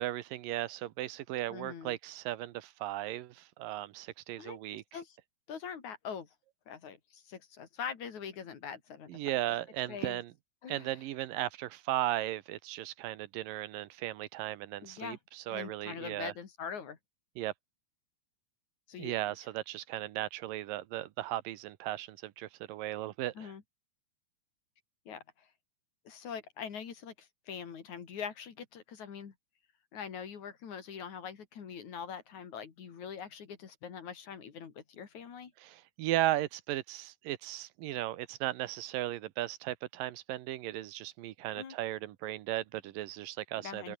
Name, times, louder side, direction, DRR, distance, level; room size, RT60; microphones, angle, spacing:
voice 1, 0.0-4.8 9.1-10.3 10.7-16.3 17.4-17.5 19.0-23.5 35.6-44.0, right 15 dB, 85° right, 2.6 m, -36 dB
voice 2, 1.5-2.0 4.4-4.6 4.9-5.2 5.5-6.3 6.7-9.2 9.9-10.2 10.6-11.0 14.8-15.2 15.5-17.0 18.9-19.1 23.4-23.6 25.1-25.5 26.1-29.3 29.9-35.5 41.6-41.8 43.6-44.0, left 7 dB, 60° left, 3.9 m, -43 dB
open air
omnidirectional pair, 4.0 m